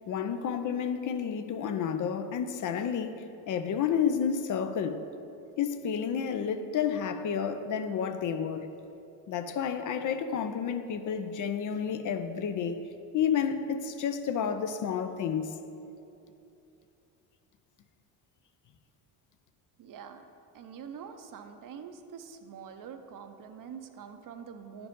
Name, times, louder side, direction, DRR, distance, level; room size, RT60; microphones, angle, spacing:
voice 1, 0.1-5.0 5.6-8.7 9.3-12.8 13.1-15.6, left 7 dB, 50° left, 0.5 m, -30 dB
voice 2, 19.8-20.2 20.5-24.9, right 7 dB, 50° right, 0.7 m, -45 dB
9.9 x 4.9 x 3.7 m
supercardioid pair, 80°, 42 cm